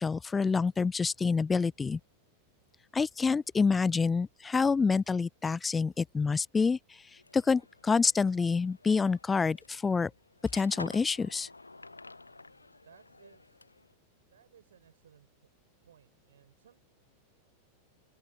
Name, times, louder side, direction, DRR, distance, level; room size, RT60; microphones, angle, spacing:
voice 1, 0.0-2.0 2.9-6.8 7.3-10.1 10.5-11.5, left 5 dB, 15° left, 0.3 m, -27 dB
sound 1, 7.1-13.9, left 3 dB, 80° left, 0.6 m, -50 dB
voice 2, 12.8-13.6 14.3-15.3 15.8-16.8, right 9 dB, 65° right, 6.1 m, -60 dB
open air
figure-of-eight pair, 90°, 0 cm